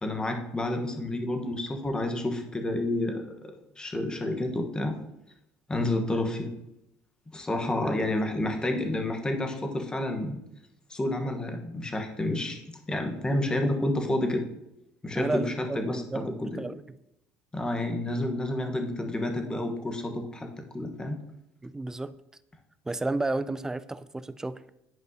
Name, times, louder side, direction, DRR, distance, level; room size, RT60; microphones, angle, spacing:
voice 1, 0.0-3.5 3.8-4.9 5.7-6.5 7.3-10.4 10.9-12.6 12.9-14.4 15.0-16.6 17.5-20.5 20.7-21.2, left 1 dB, 15° left, 4 dB, 1.1 m, -29 dB
voice 2, 15.1-17.0 21.6-22.1 22.9-24.6, right 2 dB, 10° right, 14 dB, 0.3 m, -32 dB
10.5 x 5.3 x 2.8 m, 0.84 s
cardioid pair, 125°, 6 cm